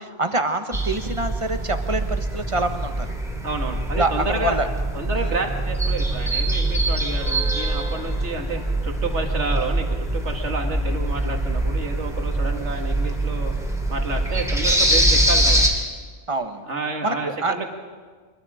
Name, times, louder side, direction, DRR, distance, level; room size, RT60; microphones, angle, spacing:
voice 1, 0.0-3.2 3.9-4.7 5.2-5.3 16.3-16.6 17.0-17.5, right 2 dB, 30° right, 7 dB, 1.3 m, -26 dB
sound 1, 0.7-15.7, right 1 dB, 5° right, 2.9 m, -23 dB
voice 2, 3.4-4.6 4.9-13.5 13.9-15.6 16.7-17.7, right 3 dB, 80° right, 3 dB, 2.3 m, -29 dB
25.0 x 21.0 x 5.0 m, 1.5 s
omnidirectional pair, 1.2 m